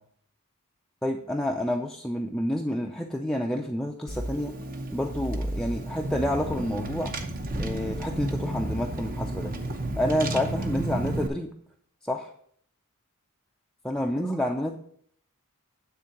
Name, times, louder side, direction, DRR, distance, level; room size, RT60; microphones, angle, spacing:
voice 1, 1.0-4.5 4.9-7.2 7.6-9.5 10.0-11.5 12.0-12.3 13.8-14.8, left 1 dB, ahead, 1 dB, 0.5 m, -29 dB
Car / Engine, 4.1-11.3, right 1 dB, 40° right, 0.9 m, -32 dB
9.6 x 3.8 x 5.9 m, 0.62 s
head